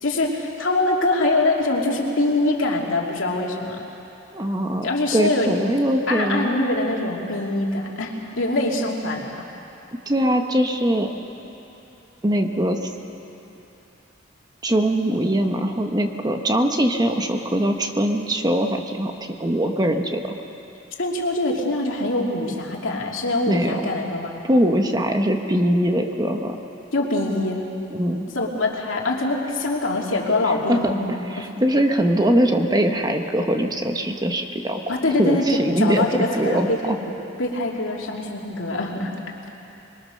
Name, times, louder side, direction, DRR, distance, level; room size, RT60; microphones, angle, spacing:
voice 1, 0.0-3.8 4.8-5.6 6.1-9.3 21.0-24.4 26.9-27.7 28.3-31.5 34.9-39.1, left 2 dB, 70° left, -1 dB, 3.0 m, -24 dB
voice 2, 4.3-6.5 10.1-11.1 12.2-12.9 14.6-19.1 19.4-20.4 23.5-23.9 24.4-26.6 27.9-28.3 30.7-30.9 31.2-37.0, right 1 dB, 20° right, 4 dB, 1.2 m, -22 dB
26.5 x 22.0 x 6.5 m, 2.9 s
head